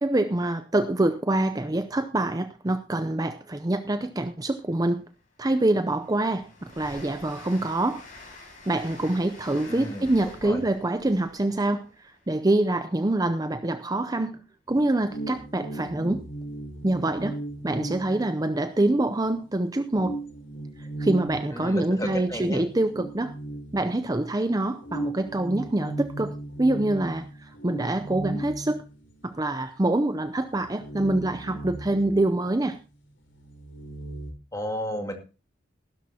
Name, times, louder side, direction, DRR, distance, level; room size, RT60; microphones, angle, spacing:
voice 1, 0.0-5.0 5.4-8.0 8.7-14.4 14.7-16.3 16.8-17.4 17.6-20.2 20.8-23.3 23.7-28.8 29.2-32.8, right 2 dB, 20° right, 10 dB, 0.6 m, -25 dB
Train, 4.6-4.7 5.1-12.9, left 2 dB, 45° left, 5.6 m, -48 dB
voice 2, 9.6-10.6 21.5-22.6 34.5-35.1, equal, 20° left, 4 dB, 2.0 m, -33 dB
sound 1, 14.7-19.0 19.4-19.5 19.9-24.3 24.8-29.5 29.8-29.9 30.3-32.8 33.1-34.3, right 2 dB, 70° left, 4.0 m, -37 dB
16.0 x 12.5 x 2.8 m, 0.31 s
head